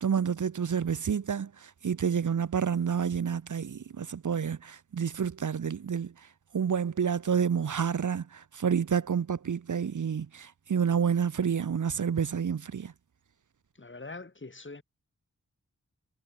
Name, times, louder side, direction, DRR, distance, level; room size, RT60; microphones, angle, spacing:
voice 1, 0.0-6.1 6.5-12.9, right 7 dB, 65° right, 0.8 m, -29 dB
voice 2, 13.8-14.8, left 3 dB, 35° left, 3.0 m, -43 dB
cardioid pair, 45°, 33 cm